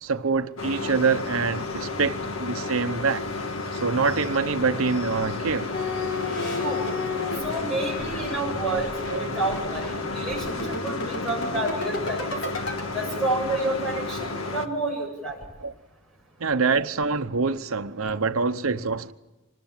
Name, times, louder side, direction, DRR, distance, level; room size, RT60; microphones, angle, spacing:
voice 1, 0.0-3.3 3.7-5.7 9.1-9.3 12.4-12.6 15.6-15.7 16.4-19.1, right 4 dB, 90° right, 0.9 m, -25 dB
sound 1, 0.6-14.7, left 3 dB, 90° left, 1.7 m, -32 dB
sound 2, 5.7-12.8, left 3 dB, 60° left, 4.9 m, -33 dB
voice 2, 7.4-8.9 9.2-12.3 12.9-15.4, right 2 dB, ahead, 7.7 m, -29 dB
26.0 x 20.5 x 7.4 m
head